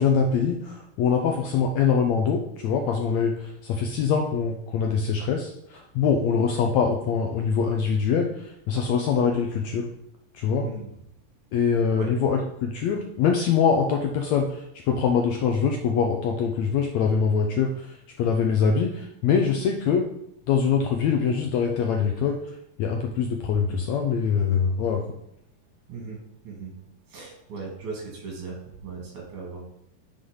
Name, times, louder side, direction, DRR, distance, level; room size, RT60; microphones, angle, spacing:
voice 1, 0.0-9.9 10.3-10.7 11.5-20.1 20.5-22.4 22.8-25.0, left 6 dB, 80° left, 3 dB, 1.6 m, -24 dB
voice 2, 10.6-10.9 11.9-12.1 25.9-26.7 27.1-29.6, right 4 dB, 60° right, -1 dB, 3.8 m, -37 dB
8.8 x 5.1 x 5.5 m, 0.78 s
omnidirectional pair, 4.0 m